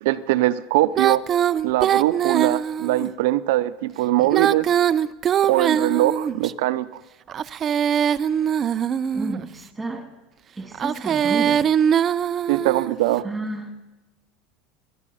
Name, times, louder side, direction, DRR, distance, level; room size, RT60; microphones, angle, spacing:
voice 1, 0.0-1.2 1.6-4.7 5.4-7.0 12.5-13.2, right 16 dB, 80° right, 13 dB, 0.6 m, -21 dB
Female singing, 0.9-3.1 4.2-6.5 7.3-9.5 10.7-13.0, right 9 dB, 30° right, 0.4 m, -22 dB
voice 2, 9.1-10.1 10.6-11.7 13.2-13.8, right 2 dB, 10° right, 4 dB, 2.4 m, -31 dB
18.5 x 11.0 x 5.6 m, 1.1 s
supercardioid pair, 130°, 0 cm